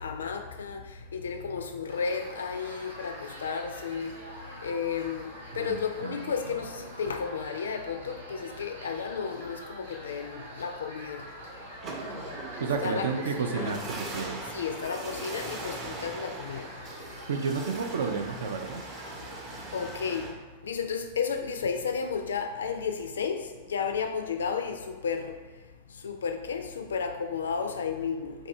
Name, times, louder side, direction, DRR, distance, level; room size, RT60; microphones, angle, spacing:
voice 1, 0.0-11.3 12.8-13.1 13.5-13.8 14.5-16.7 19.7-20.4 20.6-25.4 26.0-28.5, left 6 dB, 70° left, 0.3 m, -33 dB
sound 1, 1.9-20.2, equal, 80° right, 1.0 m, -45 dB
voice 2, 5.5-6.2 12.6-14.4 17.3-18.8, right 5 dB, 65° right, 0.3 m, -31 dB
sound 2, 11.2-20.3, right 2 dB, 35° right, 0.7 m, -40 dB
2.7 x 2.6 x 4.2 m
figure-of-eight pair, 95°, 0 cm